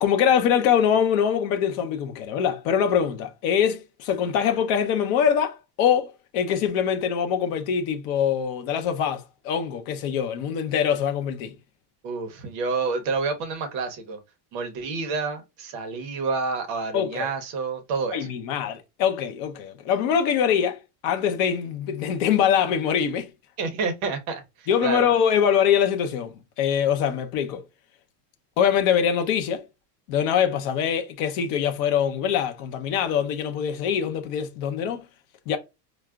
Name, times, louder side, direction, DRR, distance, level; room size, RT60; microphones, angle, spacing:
voice 1, 0.0-11.5 16.9-17.3 18.1-23.3 24.7-27.6 28.6-29.6 30.1-35.0 35.5-35.6, left 8 dB, 50° left, 0.6 m, -23 dB
voice 2, 12.0-14.2 14.5-18.3 23.6-24.4 24.8-25.1, right 4 dB, 35° right, 0.6 m, -28 dB
4.5 x 2.0 x 2.3 m
cardioid pair, 175°, 50 cm